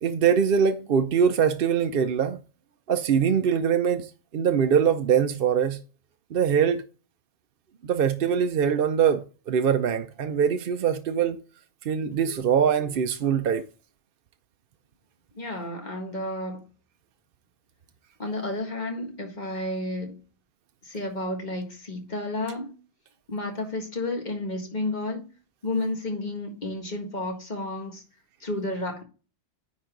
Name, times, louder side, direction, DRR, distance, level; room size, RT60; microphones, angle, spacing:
voice 1, 0.0-2.4 2.9-5.8 6.3-6.8 7.8-11.4 11.8-13.7, right 7 dB, 60° right, 0.8 m, -23 dB
voice 2, 15.3-16.6 18.2-20.2 20.8-22.7 23.3-25.2 25.6-28.0 28.4-29.0, left 2 dB, 40° left, 1.9 m, -31 dB
9.8 x 4.3 x 3.8 m
omnidirectional pair, 1.1 m